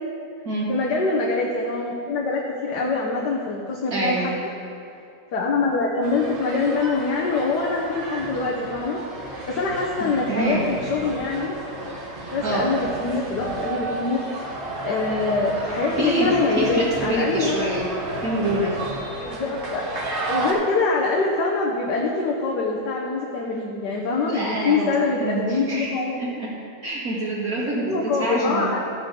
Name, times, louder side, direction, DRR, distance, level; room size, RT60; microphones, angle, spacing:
voice 1, 0.7-4.3 5.3-9.0 9.5-11.6 12.3-14.2 14.8-17.7 19.2-19.9 20.3-26.2 27.8-28.8, left 3 dB, 80° left, -3 dB, 1.6 m, -24 dB
voice 2, 3.9-4.2 10.0-10.6 12.4-12.7 16.0-17.9 18.2-18.7 24.2-26.5 26.8-28.7, right 1 dB, 60° right, -7 dB, 3.0 m, -26 dB
sound 1, 6.0-20.5, right 2 dB, 45° right, 1.6 m, -32 dB
14.0 x 8.8 x 3.7 m, 2.6 s
omnidirectional pair, 1.8 m